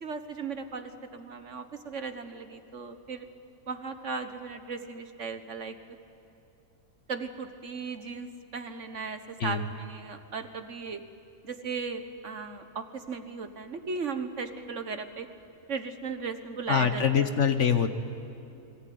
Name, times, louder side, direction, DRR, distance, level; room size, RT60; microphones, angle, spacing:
voice 1, 0.0-3.3 3.7-5.8 7.1-11.0 11.4-15.3 15.7-17.3, right 5 dB, 55° right, 9 dB, 1.5 m, -37 dB
voice 2, 16.7-17.9, left 7 dB, 55° left, 9 dB, 1.4 m, -24 dB
29.0 x 21.5 x 9.4 m, 2.7 s
omnidirectional pair, 1.6 m